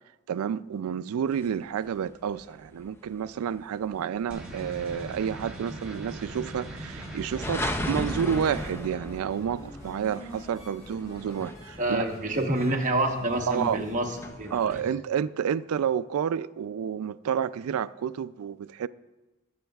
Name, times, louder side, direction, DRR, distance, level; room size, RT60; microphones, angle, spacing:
voice 1, 0.3-12.0 12.4-12.5 13.5-13.9 14.5-18.9, right 8 dB, 90° right, 0.3 m, -30 dB
starting train, 1.4-14.8, left 1 dB, 10° left, 0.4 m, -38 dB
sound 1, 4.3-8.7, right 1 dB, 5° right, 1.7 m, -40 dB
sound 2, 8.2-14.3, equal, 85° left, 3.8 m, -48 dB
voice 2, 11.8-14.1 14.4-14.8, right 1 dB, 35° right, 1.0 m, -27 dB
19.5 x 7.2 x 2.3 m
head